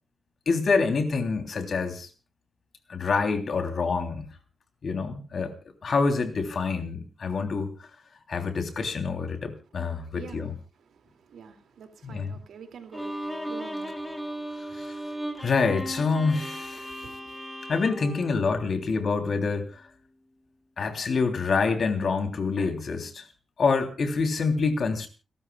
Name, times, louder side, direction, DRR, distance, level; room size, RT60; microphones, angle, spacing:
voice 1, 0.5-2.1 2.9-4.3 4.8-5.5 5.8-7.7 8.3-10.5 12.0-12.3 14.8-14.9 15.4-16.9 17.7-19.8 20.8-23.2 23.6-25.1, left 4 dB, 55° left, 3.2 m, -26 dB
voice 2, 9.8-10.5 10.7-15.5 16.8-17.3, right 7 dB, 85° right, 2.5 m, -49 dB
Bowed string instrument, 12.9-19.2, equal, 5° left, 2.2 m, -36 dB
29.5 x 13.0 x 2.4 m
wide cardioid pair, 115°, 0 cm